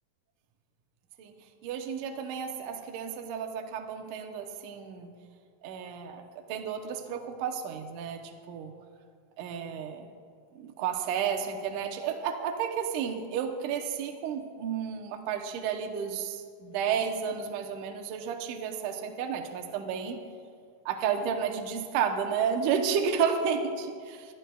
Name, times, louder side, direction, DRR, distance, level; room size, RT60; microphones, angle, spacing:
voice 1, 1.6-5.1 5.6-6.2 6.5-8.7 9.4-10.1 10.5-20.2 20.9-23.9, right 7 dB, 75° right, 4 dB, 2.2 m, -32 dB
23.5 x 12.5 x 2.3 m, 2.1 s
omnidirectional pair, 4.2 m